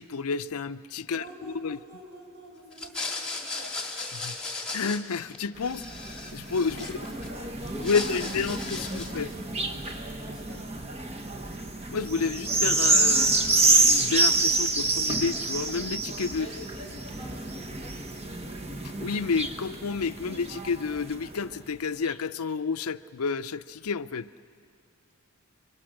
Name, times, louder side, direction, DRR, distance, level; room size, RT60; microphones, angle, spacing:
voice 1, 0.0-1.8 4.1-4.4 4.7-5.8 6.3-7.0 7.8-9.3 11.9-16.5 18.8-24.3, left 5 dB, 85° left, 13 dB, 0.6 m, -30 dB
voice 2, 1.0-3.9 6.7-8.4 8.8-10.9 16.3-18.3, equal, 45° right, -1 dB, 6.5 m, -47 dB
sound 1, 2.7-5.4 5.6-7.3 7.6-9.3, left 3 dB, 5° left, 2.1 m, -36 dB
sound 2, 5.6-21.4 22.1-22.2, right 3 dB, 30° right, 1.2 m, -28 dB
30.0 x 24.0 x 6.4 m, 2.4 s
head